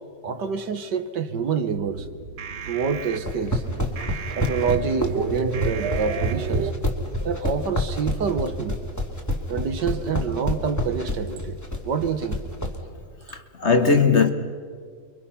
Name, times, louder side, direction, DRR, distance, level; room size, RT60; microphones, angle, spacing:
voice 1, 0.2-2.1 2.7-3.6 4.4-6.7 7.2-8.8 9.5-11.6 11.8-12.4, right 5 dB, 70° right, 1.8 m, -27 dB
sound 1, 1.7-6.7, right 6 dB, 45° right, 1.0 m, -31 dB
sound 2, 3.1-12.7, left 1 dB, 10° left, 2.5 m, -27 dB
voice 2, 13.3-14.3, left 5 dB, 45° left, 1.2 m, -19 dB
30.0 x 24.0 x 5.7 m
omnidirectional pair, 1.9 m